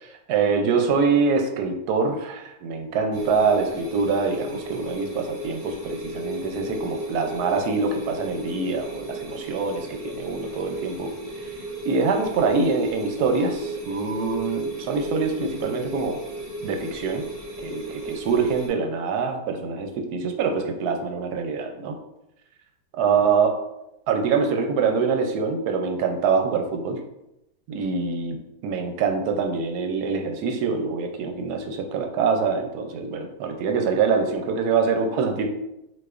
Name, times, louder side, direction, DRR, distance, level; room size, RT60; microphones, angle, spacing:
voice 1, 0.0-11.5 11.8-16.2 16.6-17.2 17.6-22.0 23.0-23.6 24.1-27.0 27.7-35.5, right 5 dB, 70° right, 4 dB, 1.0 m, -25 dB
sound 1, 3.1-18.7, right 1 dB, 40° right, 0.9 m, -35 dB
6.1 x 2.5 x 2.4 m, 0.87 s
omnidirectional pair, 2.0 m